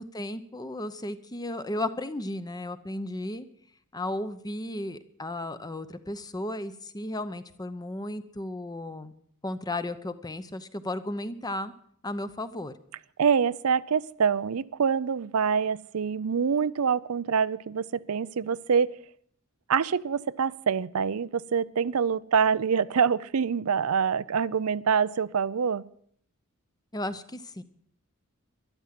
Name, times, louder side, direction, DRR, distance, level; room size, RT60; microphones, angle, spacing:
voice 1, 0.0-3.5 3.9-9.1 9.4-11.7 12.0-12.7 26.9-27.6, left 1 dB, 20° left, 12 dB, 0.8 m, -34 dB
voice 2, 13.2-19.0 19.7-25.8, right 6 dB, 75° right, 16 dB, 0.5 m, -25 dB
12.5 x 12.0 x 7.5 m, 0.63 s
head